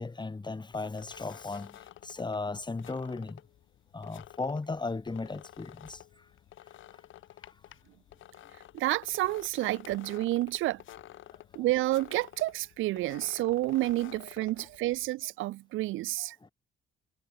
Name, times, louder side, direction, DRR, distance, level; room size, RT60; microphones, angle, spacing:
voice 1, 0.0-1.7 2.0-3.4 3.9-6.0 14.6-14.7, left 3 dB, 20° left, 3.7 m, -36 dB
sound 1, 0.7-15.1, left 12 dB, 75° left, 7.7 m, -51 dB
voice 2, 8.7-10.8 11.6-16.4, right 17 dB, 80° right, 0.5 m, -30 dB
cardioid pair, 90°, 20 cm